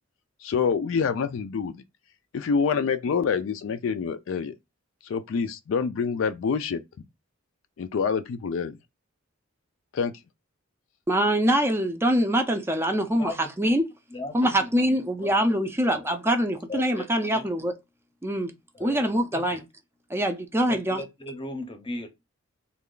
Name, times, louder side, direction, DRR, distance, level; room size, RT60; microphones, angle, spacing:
voice 1, 0.4-1.8 2.3-4.5 5.1-6.8 7.8-8.8 9.9-10.1, left 6 dB, 70° left, 0.4 m, -26 dB
voice 2, 11.1-13.9 14.3-17.7 18.2-18.5 18.8-19.6 20.1-21.0, right 1 dB, 10° right, 0.4 m, -24 dB
voice 3, 13.2-13.7 14.1-15.3 15.8-16.0 16.7-17.0 17.3-17.4 18.7-19.6 20.7-22.1, left 2 dB, 25° left, 0.7 m, -37 dB
3.3 x 2.3 x 3.7 m
head